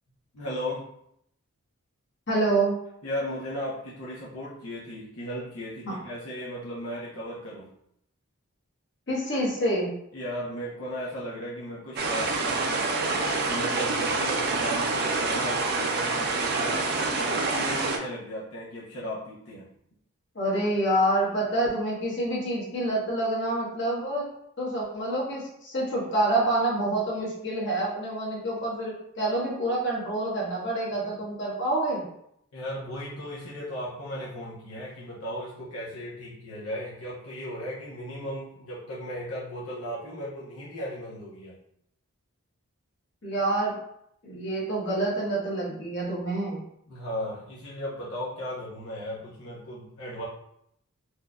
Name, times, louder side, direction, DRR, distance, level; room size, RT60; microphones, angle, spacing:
voice 1, 0.3-0.9 3.0-7.7 10.1-19.7 32.5-41.6 46.9-50.3, equal, 80° left, -7 dB, 0.8 m, -36 dB
voice 2, 2.3-2.8 5.8-6.0 9.1-9.9 20.3-24.2 24.6-32.0 43.2-43.7 44.2-46.6, right 1 dB, 50° left, -5 dB, 1.1 m, -27 dB
sound 1, 12.0-18.0, right 3 dB, 45° right, 0.4 m, -27 dB
4.3 x 2.5 x 2.3 m, 0.74 s
head